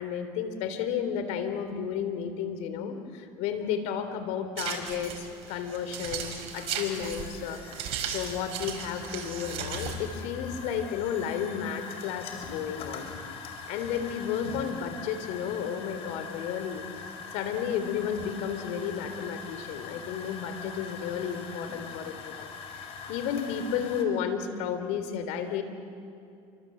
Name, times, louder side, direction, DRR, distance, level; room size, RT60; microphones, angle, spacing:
voice 1, 0.0-13.1 13.7-16.8 17.3-25.6, left 8 dB, 75° left, 9 dB, 3.6 m, -32 dB
sound 1, 4.6-10.1, right 7 dB, 60° right, 5.2 m, -37 dB
sound 2, 6.5-24.0, left 5 dB, 55° left, 4.7 m, -42 dB
28.5 x 25.0 x 7.9 m, 2.6 s
supercardioid pair, 115°, 12 cm